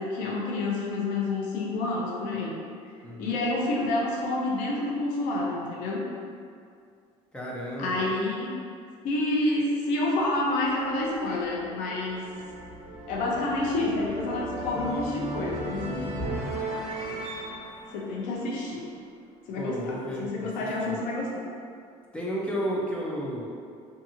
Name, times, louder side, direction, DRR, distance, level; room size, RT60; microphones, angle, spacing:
voice 1, 0.0-2.6 3.2-6.1 7.8-8.6 9.0-12.2 13.1-16.2 17.9-18.9 19.5-21.3, left 2 dB, 75° left, -3 dB, 0.6 m, -28 dB
voice 2, 3.0-3.4 7.3-8.1 19.6-20.5 20.9-21.0 22.1-23.5, equal, 10° left, -5 dB, 0.4 m, -32 dB
sound 1, 10.0-19.1, right 2 dB, 50° right, 0.5 m, -37 dB
2.7 x 2.6 x 2.5 m, 2.3 s
cardioid pair, 130°, 14 cm